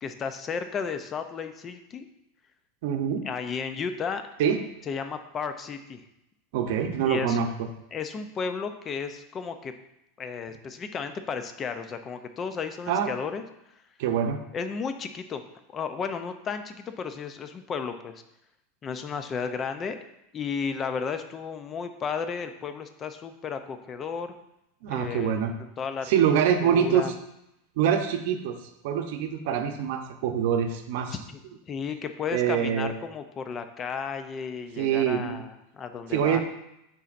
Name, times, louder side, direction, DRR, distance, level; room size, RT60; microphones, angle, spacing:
voice 1, 0.0-2.1 3.2-4.2 4.9-6.0 7.1-7.4 7.9-9.7 10.2-13.5 14.5-15.4 15.7-18.2 18.8-20.0 20.3-24.3 24.9-25.4 25.8-26.1 26.6-27.1 31.3-31.4 31.7-36.4, left 6 dB, 25° left, 8 dB, 0.5 m, -33 dB
voice 2, 2.8-3.2 4.4-4.6 6.5-7.7 12.9-13.1 14.0-14.4 24.8-25.5 26.0-27.1 27.8-28.6 28.8-31.1 32.3-32.9 34.8-35.4 36.1-36.4, right 8 dB, 60° right, 6 dB, 0.7 m, -25 dB
10.0 x 4.0 x 2.5 m, 0.84 s
supercardioid pair, 155°, 0 cm